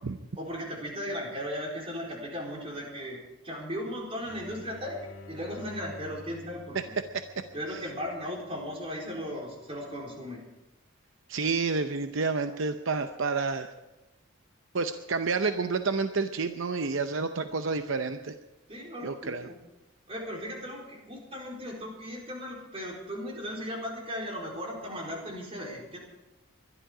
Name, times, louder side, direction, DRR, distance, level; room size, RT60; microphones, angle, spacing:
voice 1, 0.4-3.2 3.4-5.0 5.3-6.9 7.5-10.4 18.7-19.4 20.1-26.0, equal, 25° right, -1 dB, 4.2 m, -37 dB
sound 1, 4.2-9.7, left 1 dB, 75° left, 1.8 m, -49 dB
voice 2, 11.3-13.7 14.7-18.3 19.0-19.5, right 4 dB, 65° right, 8 dB, 0.7 m, -29 dB
22.0 x 12.0 x 5.0 m, 0.98 s
head